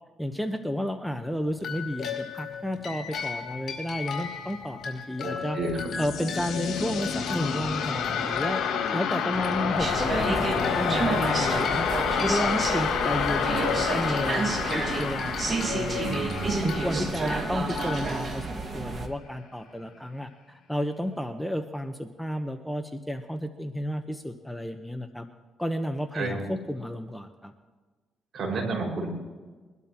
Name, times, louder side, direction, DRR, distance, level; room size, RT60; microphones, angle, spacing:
voice 1, 0.2-5.6 6.0-8.6 8.9-11.9 12.2-25.3 25.6-27.5, equal, 5° left, 7 dB, 1.0 m, -32 dB
sound 1, 1.6-19.0, left 6 dB, 60° left, 4.6 m, -37 dB
voice 2, 5.2-5.9 16.0-16.8 26.1-26.4 28.3-29.1, right 3 dB, 55° right, -1 dB, 5.3 m, -31 dB
sound 2, 5.6-18.3, left 6 dB, 80° left, 2.2 m, -29 dB
sound 3, 9.8-19.1, right 4 dB, 40° right, 1.7 m, -30 dB
23.0 x 12.0 x 3.0 m, 1.4 s
cardioid pair, 85°, 0 cm